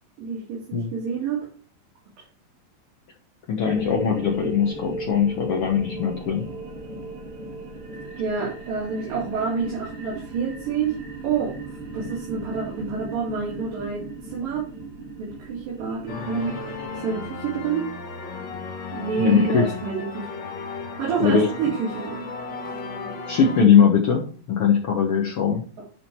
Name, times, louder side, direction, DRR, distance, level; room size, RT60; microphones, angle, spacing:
voice 1, 0.2-1.5 2.2-2.3 8.2-10.9 11.2-11.5 11.9-14.7 15.2-17.9 18.9-20.3 21.0-22.2, right 5 dB, 70° right, -5 dB, 3.8 m, -28 dB
voice 2, 3.5-6.5 19.2-19.7 21.2-21.5 23.0-25.6, left 7 dB, 80° left, 1 dB, 1.2 m, -20 dB
sound 1, 3.6-17.2, right 2 dB, 45° right, 2.5 m, -37 dB
sound 2, 16.1-23.7, left 3 dB, 55° left, 1.2 m, -35 dB
11.0 x 4.6 x 4.4 m, 0.43 s
omnidirectional pair, 4.1 m